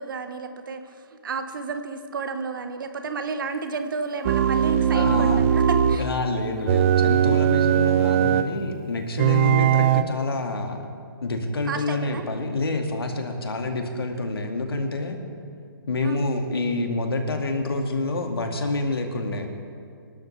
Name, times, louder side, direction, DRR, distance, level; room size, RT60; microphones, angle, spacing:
voice 1, 0.0-6.1 11.7-12.2 16.0-16.2, right 4 dB, 55° right, 7 dB, 1.3 m, -32 dB
sound 1, 4.2-6.1 6.7-8.5 9.2-10.0, right 10 dB, 35° right, 0.5 m, -20 dB
voice 2, 4.9-5.4 6.0-10.9 11.2-15.2 15.9-19.5, left 2 dB, 75° left, 4 dB, 2.1 m, -27 dB
27.0 x 12.0 x 3.3 m, 2.4 s
figure-of-eight pair, 135°, 13 cm